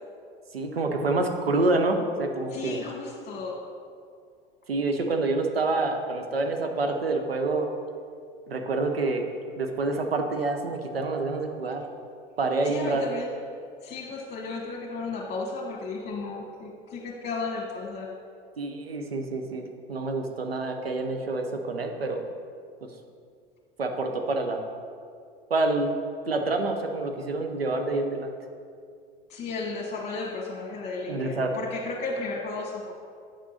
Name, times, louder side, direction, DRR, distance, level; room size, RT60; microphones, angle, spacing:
voice 1, 0.5-2.8 4.7-7.7 8.5-9.3 9.6-11.8 12.4-13.0 18.6-22.2 23.8-24.6 25.5-25.9 26.3-28.3 31.1-31.6, right 2 dB, 90° right, 4 dB, 0.9 m, -27 dB
voice 2, 2.5-3.6 12.6-13.3 13.8-18.1 29.3-32.9, left 3 dB, 35° left, -4 dB, 1.5 m, -34 dB
9.4 x 6.4 x 4.2 m, 2.3 s
figure-of-eight pair, 75°, 29 cm